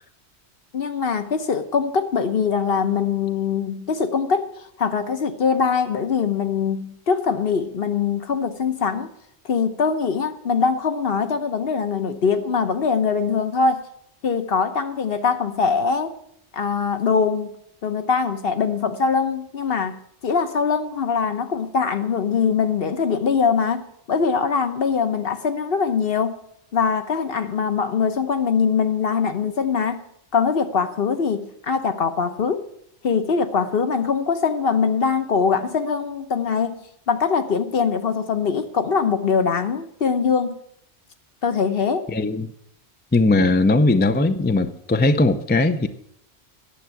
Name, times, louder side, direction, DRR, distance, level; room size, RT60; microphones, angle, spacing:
voice 1, 0.7-9.1 9.4-13.9 14.2-16.2 16.5-17.5 17.8-26.4 26.7-30.0 30.3-32.6 33.0-40.6 41.4-42.1, left 5 dB, 60° left, 1.1 m, -22 dB
voice 2, 42.1-42.5 43.1-45.9, left 2 dB, 15° left, 0.3 m, -19 dB
9.9 x 7.2 x 9.2 m
omnidirectional pair, 1.2 m